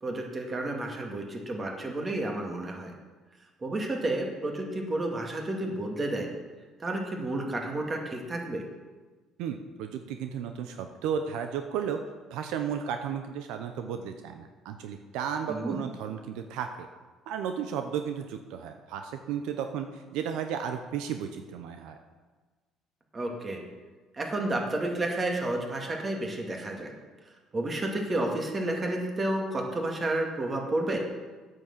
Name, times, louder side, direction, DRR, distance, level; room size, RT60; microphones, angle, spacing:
voice 1, 0.0-2.9 3.6-6.3 6.8-8.6 15.5-15.8 23.1-23.6 24.1-27.0 27.3-31.0, right 1 dB, 30° right, 1 dB, 2.2 m, -31 dB
voice 2, 9.4-12.0 12.3-16.9 17.3-22.0, right 8 dB, 80° right, 6 dB, 0.7 m, -34 dB
8.8 x 6.8 x 7.3 m, 1.3 s
supercardioid pair, 90°, 0 cm